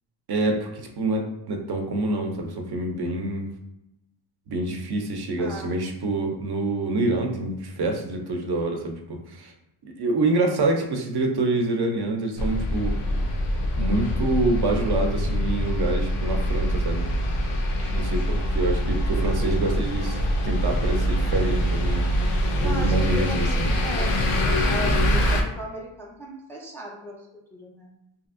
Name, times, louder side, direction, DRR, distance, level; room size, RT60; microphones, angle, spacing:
voice 1, 0.3-3.5 4.5-9.5 9.8-13.0 13.8-17.1 17.9-22.1 22.6-23.7, right 2 dB, 55° right, 2 dB, 0.6 m, -26 dB
voice 2, 5.4-5.7 18.3-18.5 22.5-27.9, right 1 dB, 5° left, -3 dB, 0.4 m, -37 dB
sound 1, 12.4-25.4, equal, 85° left, 0.6 m, -24 dB
2.8 x 2.4 x 2.4 m, 0.87 s
wide cardioid pair, 110°, 49 cm